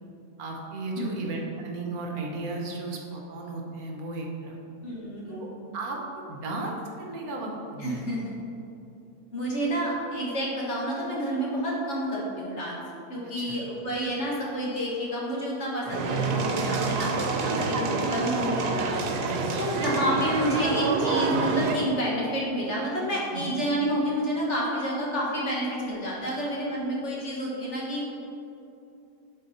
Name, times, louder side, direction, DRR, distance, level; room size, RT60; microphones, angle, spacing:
voice 1, 0.4-4.6 5.2-5.5 5.7-8.0 13.2-13.6 16.5-16.8 17.5-17.7 19.2-19.5 19.8-19.9 23.3-23.6, right 2 dB, 70° right, 0 dB, 1.4 m, -35 dB
voice 2, 4.8-5.6 7.8-8.3 9.3-12.8 13.1-19.1 19.6-28.0, equal, 50° left, -4 dB, 1.7 m, -29 dB
sound 1, 15.8-21.8, right 4 dB, 85° right, 1.3 m, -27 dB
11.5 x 3.8 x 4.2 m, 2.8 s
omnidirectional pair, 1.7 m